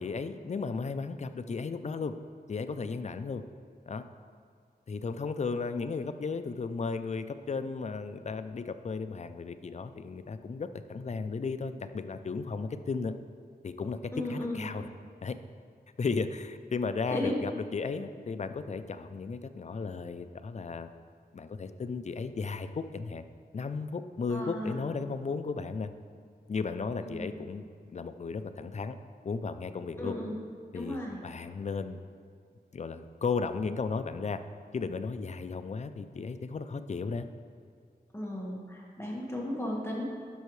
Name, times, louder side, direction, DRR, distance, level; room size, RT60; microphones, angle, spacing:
voice 1, 0.0-2.1 2.5-3.4 3.9-4.0 4.9-13.1 13.6-14.9 15.2-15.4 16.0-20.9 21.3-23.2 23.5-25.9 26.5-29.0 29.2-30.2 30.7-32.0 32.7-34.4 34.7-37.3, left 4 dB, 45° left, 10 dB, 0.4 m, -35 dB
voice 2, 14.1-14.8 17.1-17.3 24.3-24.9 27.0-27.4 30.0-30.4 30.7-31.3 38.1-40.1, left 1 dB, 15° left, -3 dB, 1.5 m, -35 dB
11.5 x 5.5 x 3.2 m, 2.2 s
wide cardioid pair, 75°, 17 cm